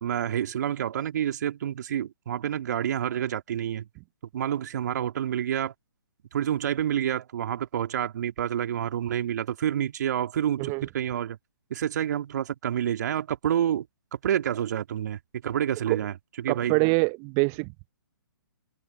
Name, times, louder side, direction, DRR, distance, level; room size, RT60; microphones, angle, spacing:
voice 1, 0.0-3.9 4.3-5.7 6.3-11.4 11.7-13.9 14.1-16.8, right 10 dB, 50° right, 2.7 m, -28 dB
voice 2, 16.5-17.9, right 36 dB, 25° right, 1.0 m, -25 dB
open air
figure-of-eight pair, 125°, 12 cm